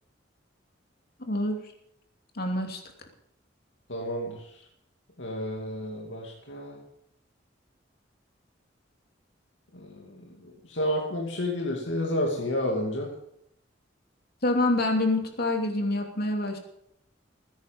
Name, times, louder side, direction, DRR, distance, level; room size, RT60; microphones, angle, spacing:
voice 1, 1.2-1.6 2.4-2.8 14.4-16.6, left 2 dB, 55° left, 4 dB, 2.9 m, -26 dB
voice 2, 3.9-4.6 5.2-6.8 9.7-13.1, left 1 dB, 80° left, -1 dB, 2.6 m, -31 dB
19.5 x 10.5 x 5.3 m, 0.75 s
head